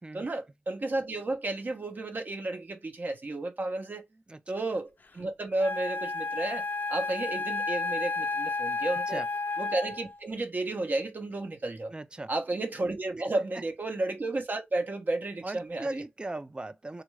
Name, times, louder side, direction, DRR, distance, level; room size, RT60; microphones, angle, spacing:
voice 1, 0.1-4.0 4.5-9.2 9.6-11.9 12.3-16.0, right 2 dB, 50° right, 0.8 m, -32 dB
Wind instrument woodwind instrument, 5.6-10.2, left 3 dB, 50° left, 0.5 m, -32 dB
voice 2, 8.8-9.3 11.9-12.3 13.2-13.3 15.4-17.0, right 2 dB, 25° right, 0.4 m, -38 dB
3.5 x 2.4 x 3.1 m
wide cardioid pair, 70°, 4 cm